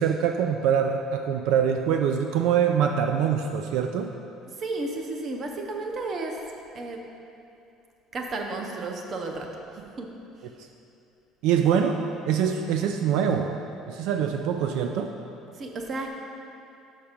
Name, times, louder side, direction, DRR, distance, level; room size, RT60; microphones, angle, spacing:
voice 1, 0.0-4.1 11.4-12.0 12.3-13.5 13.9-15.1, right 8 dB, 70° right, 5 dB, 0.3 m, -24 dB
voice 2, 4.5-6.4 6.7-7.0 8.1-9.5 9.7-10.1 15.5-16.1, right 3 dB, 30° right, 2 dB, 0.6 m, -33 dB
5.9 x 5.8 x 5.0 m, 2.6 s
cardioid pair, 175°, 0 cm